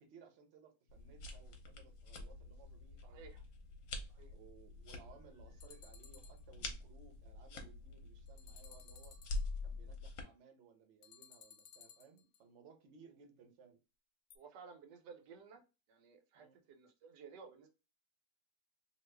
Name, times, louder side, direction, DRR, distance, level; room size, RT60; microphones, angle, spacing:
voice 1, 0.0-3.2 4.3-9.2 9.6-13.8 16.3-16.6, right 6 dB, 55° right, 5 dB, 0.8 m, -62 dB
sound 1, 0.9-10.2, left 3 dB, 60° left, 1.0 m, -46 dB
voice 2, 3.0-3.4 4.1-4.3 14.3-15.6 15.9-17.7, right 5 dB, 90° right, 5 dB, 1.3 m, -56 dB
sound 2, 5.6-6.4 8.3-9.5 11.0-12.4 14.3-14.4, left 8 dB, 90° left, 1.2 m, -59 dB
2.9 x 2.4 x 3.3 m, 0.28 s
omnidirectional pair, 1.8 m